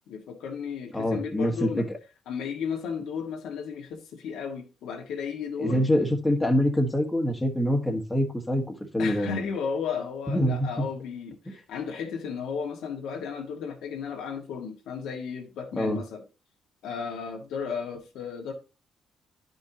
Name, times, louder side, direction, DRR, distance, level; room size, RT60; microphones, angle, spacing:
voice 1, 0.1-1.8 2.3-5.9 9.0-16.2 16.8-18.5, left 6 dB, 85° left, 1.7 m, -34 dB
voice 2, 0.9-1.8 5.6-9.5 10.3-10.9 15.8-16.0, equal, 10° left, 1.5 m, -25 dB
10.5 x 5.5 x 2.8 m
cardioid pair, 90°, 0 cm